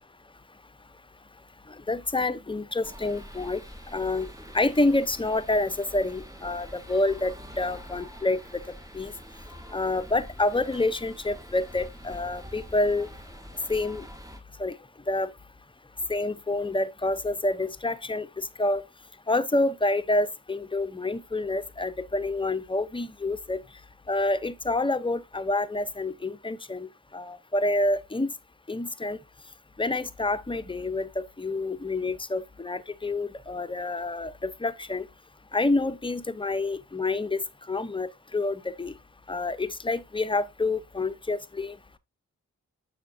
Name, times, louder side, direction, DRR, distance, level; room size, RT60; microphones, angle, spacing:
voice 1, 1.9-3.6 3.9-4.3 4.5-8.6 8.9-9.1 9.7-13.1 13.7-14.0 14.6-14.7 15.1-15.3 16.1-18.8 19.3-23.6 24.1-28.3 28.7-29.2 29.8-35.1 35.5-37.4 37.7-38.9 39.3-41.8, left 2 dB, 15° left, 0.9 m, -28 dB
sound 1, 2.8-14.4, equal, 10° right, 1.6 m, -45 dB
6.9 x 6.4 x 2.7 m
supercardioid pair, 45°, 33 cm